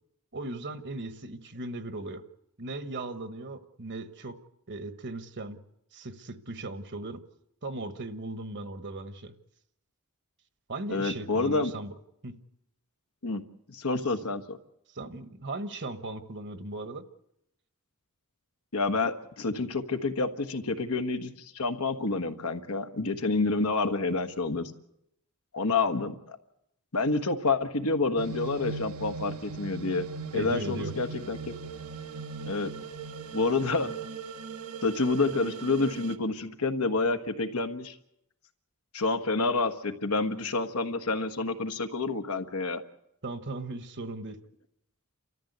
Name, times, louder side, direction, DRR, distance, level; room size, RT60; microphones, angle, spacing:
voice 1, 0.3-2.2 2.6-4.4 4.7-5.6 5.9-7.2 7.6-9.3 10.7-11.9 12.2-12.4 14.9-17.0 30.3-30.9 43.2-44.4, right 2 dB, 55° right, 11 dB, 1.3 m, -37 dB
voice 2, 10.9-11.7 13.2-13.4 13.7-14.6 18.7-24.7 25.5-26.4 26.9-30.1 30.3-31.5 32.4-32.7 33.3-33.9 34.8-37.9 38.9-42.8, left 3 dB, 75° left, 8 dB, 1.4 m, -28 dB
sound 1, 28.2-36.2, right 4 dB, 75° right, 1.1 m, -39 dB
29.5 x 14.0 x 8.1 m, 0.80 s
head